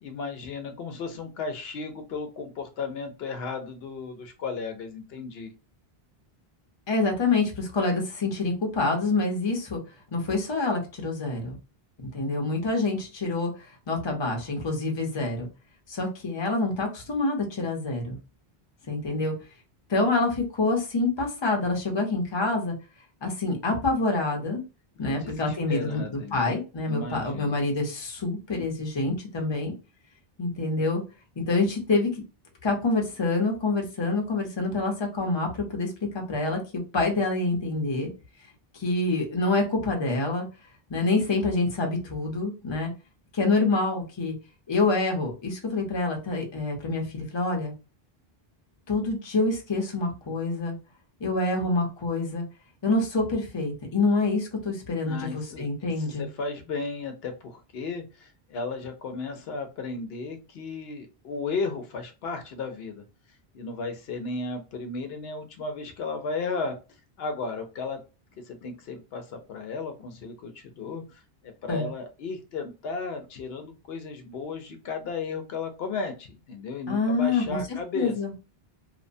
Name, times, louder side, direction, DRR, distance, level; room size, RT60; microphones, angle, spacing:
voice 1, 0.0-5.5 25.0-26.4 26.9-27.5 55.1-63.0 63.5-66.8 67.2-68.0 68.5-78.1, left 4 dB, 75° left, 6 dB, 0.8 m, -34 dB
voice 2, 6.9-9.8 10.1-11.6 12.0-13.5 13.9-15.5 15.9-18.2 18.9-19.3 19.9-22.7 23.2-24.6 25.0-29.7 30.4-31.0 31.4-32.1 32.6-38.1 38.7-40.5 40.9-42.9 43.3-44.3 44.7-47.7 48.9-50.8 51.2-52.4 52.8-56.3 71.7-71.9 76.9-77.6 77.9-78.3, left 3 dB, 30° left, 1 dB, 0.7 m, -26 dB
2.9 x 2.1 x 2.6 m, 0.30 s
omnidirectional pair, 1.0 m